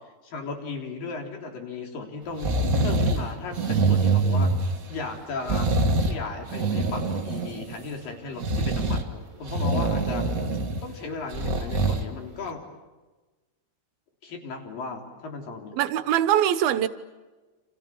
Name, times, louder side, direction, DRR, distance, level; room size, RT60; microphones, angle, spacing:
voice 1, 0.2-4.5 4.9-5.7 6.0-10.3 10.8-12.6 14.2-15.8, left 4 dB, 65° left, 5.3 m, -36 dB
sound 1, 2.4-3.2 3.5-5.0 5.4-6.2 6.5-7.8 8.4-9.0 9.5-10.8 11.3-12.0 12.5-12.6, right 3 dB, 35° right, 1.4 m, -24 dB
voice 2, 15.7-16.9, right 11 dB, 80° right, 3.0 m, -22 dB
29.5 x 27.5 x 7.3 m
omnidirectional pair, 4.3 m